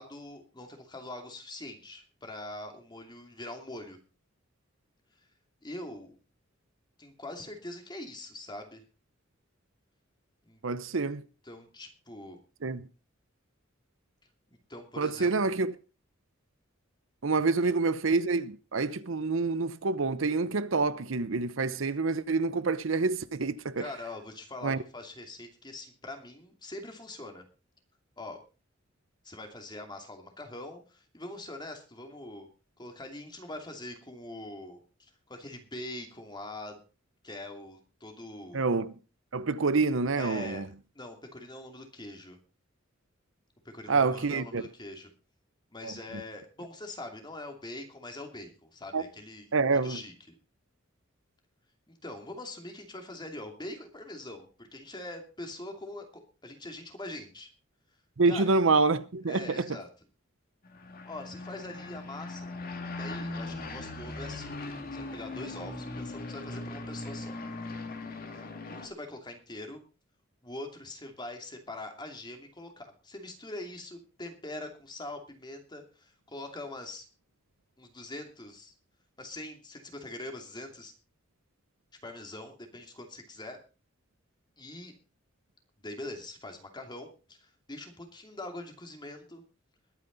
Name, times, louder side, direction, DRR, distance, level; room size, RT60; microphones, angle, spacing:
voice 1, 0.0-4.0 5.6-6.2 7.0-8.8 10.4-10.6 11.4-12.4 14.5-15.5 17.6-17.7 23.8-27.4 28.2-28.4 29.2-32.5 32.8-36.8 37.2-38.6 40.1-40.6 40.9-42.4 43.6-45.1 45.7-49.5 49.8-50.1 51.9-57.5 58.3-58.4 59.3-59.9 61.0-62.5 63.0-64.6 64.9-67.4 68.4-69.8 70.4-77.1 77.8-78.7 79.2-80.9 82.0-83.6 84.6-84.9 85.8-89.4, left 2 dB, 20° left, 2.7 m, -43 dB
voice 2, 10.6-11.2 12.6-12.9 15.0-15.7 17.2-23.9 24.6-24.8 38.5-38.9 39.3-40.7 43.9-44.6 45.8-45.9 48.9-49.0 49.5-50.0 58.2-59.7, right 3 dB, 70° right, 0.8 m, -27 dB
sound 1, 60.6-68.9, left 2 dB, 45° left, 2.5 m, -39 dB
21.0 x 9.3 x 4.0 m
head